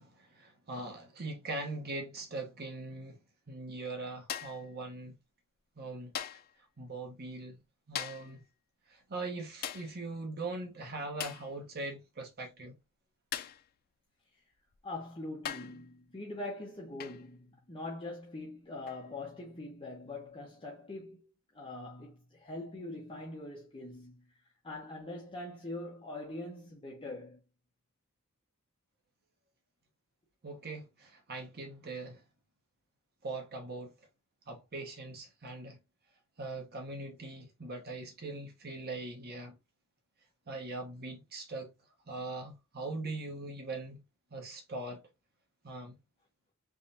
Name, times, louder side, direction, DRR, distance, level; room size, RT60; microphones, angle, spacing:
voice 1, 0.0-3.2 3.5-5.2 5.8-6.1 6.8-7.6 7.9-8.4 8.9-12.8 30.4-32.2 33.2-33.9 34.5-35.8 36.4-39.6 40.5-41.7 42.1-44.0 44.3-45.0 45.6-46.0, right 2 dB, 45° right, 1.0 m, -41 dB
sound 1, 4.3-4.7 6.1-6.5 7.9-8.4 9.6-10.0 11.2-11.5 13.3-13.7 14.7-14.8 15.4-15.8 17.0-17.3 18.9-19.1, left 9 dB, 45° left, 0.4 m, -40 dB
voice 2, 14.8-24.3 24.6-27.4, left 2 dB, 25° left, 0.9 m, -43 dB
3.6 x 3.2 x 2.6 m
head